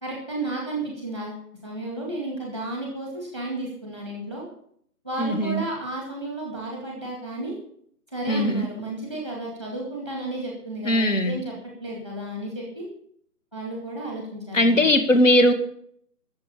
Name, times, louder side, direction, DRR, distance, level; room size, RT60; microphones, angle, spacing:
voice 1, 0.0-4.4 5.0-7.5 8.1-11.5 11.8-12.8 13.5-14.9, right 2 dB, 5° left, -2 dB, 1.6 m, -33 dB
voice 2, 5.2-5.6 8.3-8.7 10.9-11.4 14.5-15.5, left 1 dB, 50° left, 8 dB, 2.2 m, -19 dB
12.0 x 7.3 x 9.9 m, 0.65 s
hypercardioid pair, 175°, 49 cm